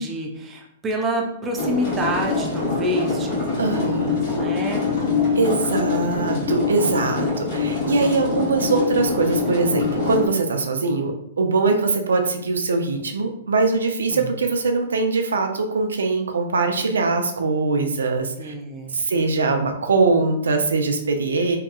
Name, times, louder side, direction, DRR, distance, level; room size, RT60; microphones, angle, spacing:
voice 1, 0.0-3.3 3.6-4.8 14.1-14.3 18.4-19.0, right 1 dB, 15° right, 1 dB, 0.5 m, -28 dB
sound 1, 1.6-10.3, left 4 dB, 45° left, 1.0 m, -24 dB
voice 2, 3.6-4.2 5.4-11.1 11.4-18.5 18.9-21.6, right 3 dB, 85° right, 4 dB, 0.4 m, -22 dB
2.7 x 2.2 x 2.3 m, 0.75 s
hypercardioid pair, 130°, 0 cm